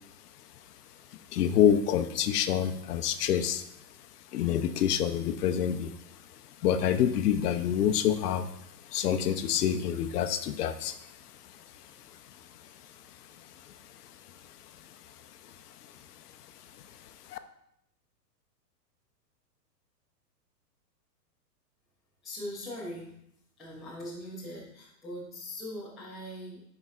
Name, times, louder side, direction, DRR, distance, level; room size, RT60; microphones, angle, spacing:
voice 1, 1.3-3.6 4.3-5.9 6.6-8.5 8.9-11.0 17.3-17.4, left 9 dB, 65° left, 9 dB, 0.7 m, -26 dB
voice 2, 22.2-23.2 23.6-26.6, left 1 dB, ahead, -12 dB, 0.3 m, -41 dB
8.7 x 4.9 x 2.4 m, 0.77 s
hypercardioid pair, 135°, 49 cm